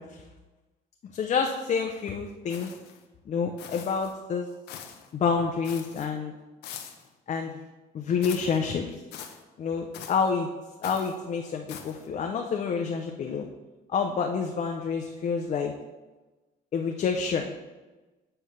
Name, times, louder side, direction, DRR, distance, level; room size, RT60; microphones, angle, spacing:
voice 1, 1.1-2.7 3.3-4.5 5.1-6.3 7.3-7.5 7.9-8.9 9.6-10.5 10.8-13.5 13.9-15.7 16.7-17.5, left 5 dB, 45° left, 3 dB, 0.6 m, -28 dB
sound 1, 2.5-3.0 3.6-4.1 4.7-5.1 5.6-6.1 6.6-7.1 8.2-8.6 9.1-9.4 9.9-10.3 10.8-11.2 11.7-12.1, left 8 dB, 85° left, 0.8 m, -43 dB
8.3 x 3.3 x 5.7 m, 1.2 s
cardioid pair, 110°, 17 cm